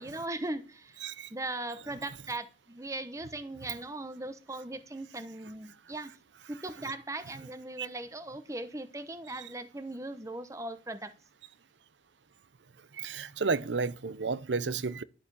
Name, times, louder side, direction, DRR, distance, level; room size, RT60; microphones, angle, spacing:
voice 1, 0.0-1.0 1.3-6.1 6.5-11.1, right 2 dB, 20° right, 0.9 m, -39 dB
voice 2, 12.9-15.0, right 4 dB, 90° right, 0.7 m, -32 dB
11.5 x 6.9 x 6.9 m
head